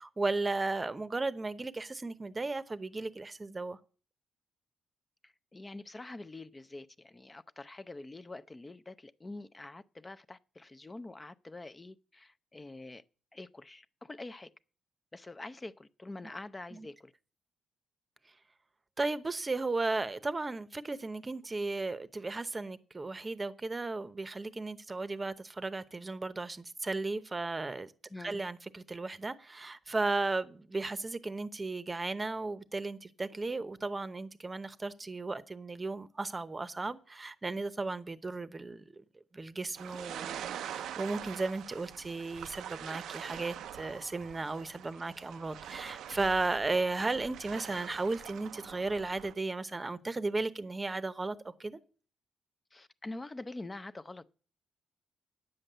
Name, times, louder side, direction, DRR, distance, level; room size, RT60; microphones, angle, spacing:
voice 1, 0.0-3.8 16.7-16.9 19.0-27.9 28.2-39.0 39.3-51.8, right 3 dB, 25° right, 0.8 m, -35 dB
voice 2, 5.2-13.0 13.3-14.5 15.1-17.1 28.1-28.4 52.7-54.2, left 2 dB, 20° left, 0.5 m, -46 dB
sound 1, 39.7-49.3, right 10 dB, 80° right, 0.5 m, -44 dB
9.8 x 7.7 x 6.7 m
cardioid pair, 95°, 0 cm